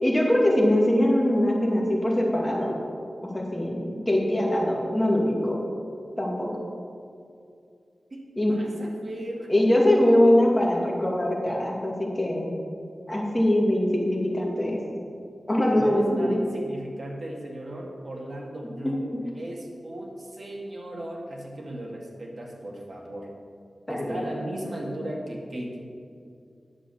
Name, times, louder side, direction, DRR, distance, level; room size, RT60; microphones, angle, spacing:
voice 1, 0.0-2.7 3.2-5.6 6.2-6.5 8.4-8.6 9.5-12.5 13.1-14.8 15.5-16.4 23.9-24.2, left 1 dB, 15° left, -2 dB, 2.3 m, -22 dB
voice 2, 8.5-9.9 15.7-23.3 23.9-25.8, right 1 dB, 50° right, -1 dB, 2.1 m, -36 dB
10.0 x 7.5 x 7.0 m, 2.4 s
wide cardioid pair, 80°, 0 cm